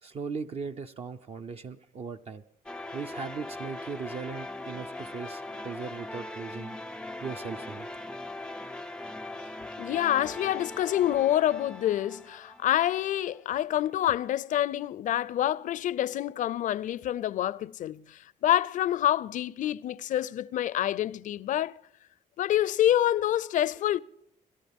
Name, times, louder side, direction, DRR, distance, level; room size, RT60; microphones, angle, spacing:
voice 1, 0.0-2.4 2.9-6.8 7.2-7.9, right 5 dB, 45° right, 0.6 m, -38 dB
sound 1, 2.7-13.6, left 2 dB, 5° left, 0.5 m, -40 dB
voice 2, 9.8-21.8 22.4-24.0, left 12 dB, 60° left, 0.5 m, -27 dB
28.0 x 13.0 x 3.6 m
cardioid pair, 125°, 14 cm